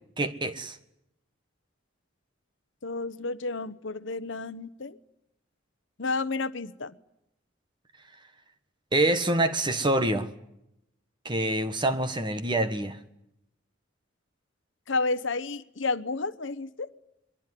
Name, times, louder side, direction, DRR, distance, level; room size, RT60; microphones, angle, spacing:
voice 1, 0.2-0.8 8.9-10.3 11.2-13.0, right 1 dB, 25° right, 1.5 m, -26 dB
voice 2, 2.8-5.0 6.0-6.9 14.9-16.9, left 3 dB, 65° left, 1.0 m, -31 dB
23.5 x 22.5 x 9.9 m
head